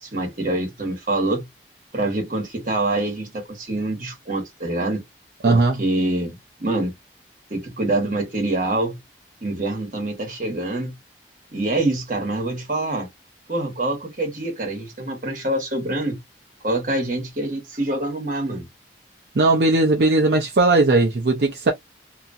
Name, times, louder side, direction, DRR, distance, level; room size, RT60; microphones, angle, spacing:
voice 1, 0.0-1.4 1.9-5.0 5.5-6.9 7.5-9.0 9.4-10.9 11.5-13.1 13.5-16.2 16.6-18.7, right 2 dB, 50° right, 1.3 m, -25 dB
voice 2, 5.4-5.8 19.3-21.7, right 2 dB, 70° right, 0.6 m, -18 dB
2.8 x 2.4 x 2.6 m
head